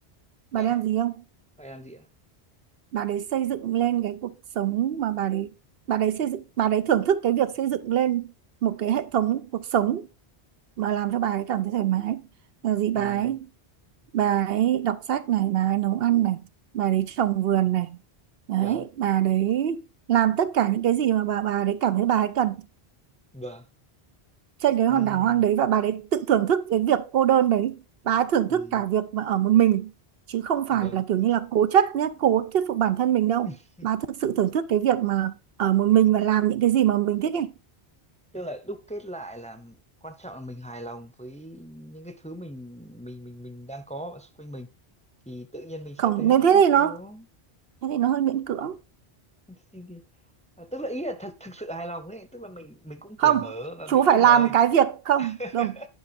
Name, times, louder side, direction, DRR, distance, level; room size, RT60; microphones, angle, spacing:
voice 1, 0.5-1.2 2.9-5.5 5.9-8.3 8.6-10.1 10.8-12.2 12.6-13.5 14.1-16.4 16.7-18.0 18.5-19.8 20.1-22.6 24.6-27.8 28.0-29.9 30.3-33.5 33.8-35.3 35.6-37.5 46.0-47.0 47.8-48.8 53.2-53.5 53.9-55.7, right 10 dB, 70° right, 0.8 m, -23 dB
voice 2, 1.6-2.1 12.9-13.4 18.6-18.9 23.3-23.6 24.9-25.4 28.5-28.8 30.7-31.0 33.4-33.9 38.3-44.7 45.3-47.2 49.5-50.0 50.6-54.5 55.2-55.9, right 1 dB, 10° left, 0.7 m, -39 dB
10.5 x 5.3 x 4.1 m
omnidirectional pair, 1.1 m